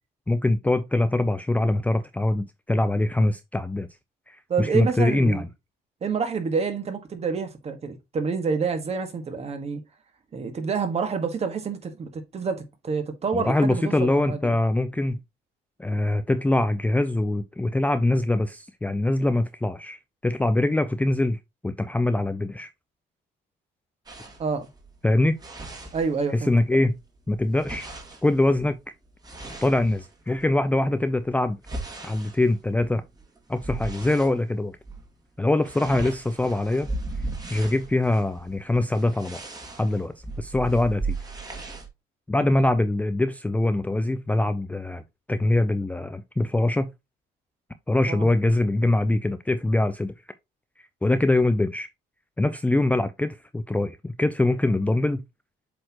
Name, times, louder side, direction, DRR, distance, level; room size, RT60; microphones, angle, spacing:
voice 1, 0.3-3.9 4.3-5.5 13.3-15.2 15.8-22.7 25.0-25.4 26.3-26.9 27.3-27.9 28.2-28.8 29.6-31.6 32.0-33.0 33.5-34.8 35.4-36.9 37.5-39.4 39.8-41.2 42.3-45.0 45.3-46.9 47.9-50.1 51.0-51.9 52.4-55.2, left 2 dB, 10° left, 0.5 m, -23 dB
voice 2, 4.5-5.4 6.0-9.8 10.3-14.5 24.4-24.7 25.9-26.8 42.4-42.6 48.1-48.3, right 5 dB, 40° right, 1.6 m, -28 dB
sound 1, 24.1-26.6 26.9-30.5 31.0-34.4 34.8-35.1 35.3-41.9, right 3 dB, 25° right, 2.0 m, -37 dB
7.7 x 4.3 x 2.9 m
cardioid pair, 110°, 17 cm